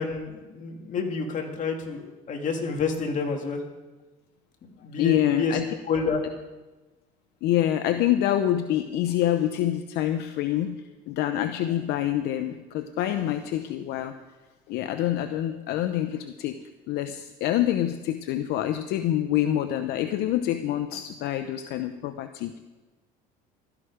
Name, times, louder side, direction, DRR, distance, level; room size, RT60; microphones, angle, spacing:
voice 1, 0.0-3.6 4.6-6.2, left 4 dB, 45° left, 3 dB, 2.6 m, -29 dB
voice 2, 5.0-5.6 7.4-10.8 11.1-14.1 14.7-16.6 16.9-22.6, left 12 dB, 75° left, 9 dB, 0.8 m, -26 dB
16.0 x 13.0 x 5.0 m, 1.2 s
cardioid pair, 110°, 17 cm